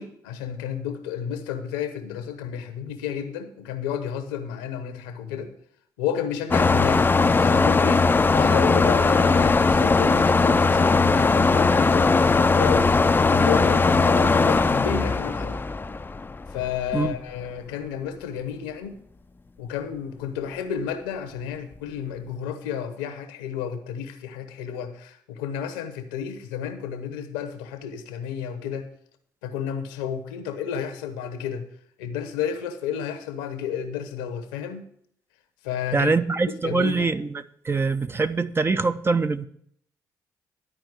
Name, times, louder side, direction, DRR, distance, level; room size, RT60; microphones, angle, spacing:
voice 1, 0.0-5.5 6.0-12.9 13.2-15.6 16.5-19.0 19.6-28.9 29.4-31.6 32.0-34.8 35.6-36.1 36.4-37.1, left 8 dB, 85° left, 8 dB, 1.0 m, -31 dB
sound 1, 6.5-16.7, left 3 dB, 20° left, 0.5 m, -19 dB
voice 2, 35.9-39.5, right 4 dB, 25° right, 11 dB, 0.7 m, -24 dB
11.5 x 4.5 x 7.8 m, 0.64 s
hypercardioid pair, 50°, 9 cm